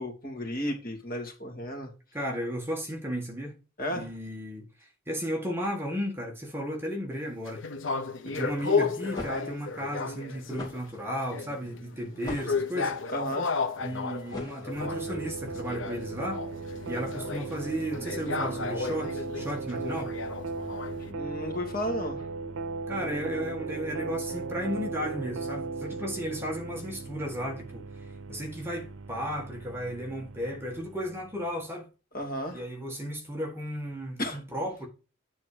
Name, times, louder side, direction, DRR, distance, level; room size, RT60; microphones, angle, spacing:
voice 1, 0.0-1.9 3.8-4.1 13.1-13.6 21.1-22.2 32.1-32.6 34.2-34.4, equal, 45° left, 2.6 m, -33 dB
voice 2, 2.1-3.5 3.9-7.6 8.2-12.9 13.8-16.4 16.9-20.2 22.9-31.9 32.5-34.9, equal, 10° right, 1.6 m, -34 dB
sound 1, 7.5-10.8 11.1-21.1, left 4 dB, 75° left, 0.9 m, -33 dB
sound 2, 9.0-15.1, left 2 dB, 20° left, 2.6 m, -44 dB
sound 3, 14.7-31.5, right 4 dB, 90° right, 0.6 m, -37 dB
9.5 x 4.2 x 4.9 m
head